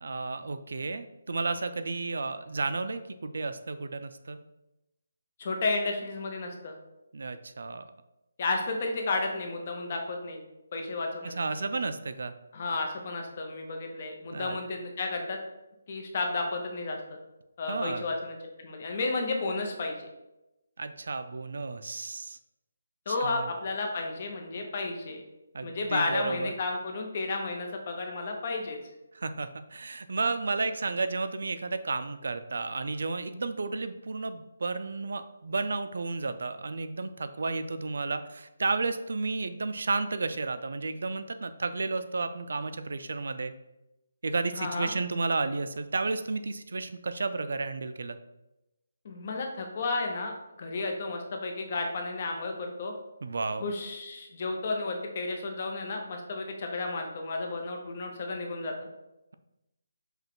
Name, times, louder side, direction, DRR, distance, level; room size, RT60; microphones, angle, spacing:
voice 1, 0.0-4.4 7.1-7.9 11.2-12.3 14.3-14.6 17.7-18.1 20.8-22.4 23.1-23.5 25.5-26.5 29.1-43.5 44.2-48.2 53.2-53.6, right 3 dB, 65° right, 10 dB, 0.3 m, -32 dB
voice 2, 5.4-6.8 8.4-10.4 10.7-11.3 12.5-15.4 15.9-17.0 17.6-20.1 23.1-25.2 25.6-28.8 44.5-44.9 49.0-52.9 53.6-58.7, left 3 dB, 35° left, 3 dB, 0.7 m, -32 dB
5.6 x 2.3 x 3.7 m, 0.95 s
hypercardioid pair, 170°, 0 cm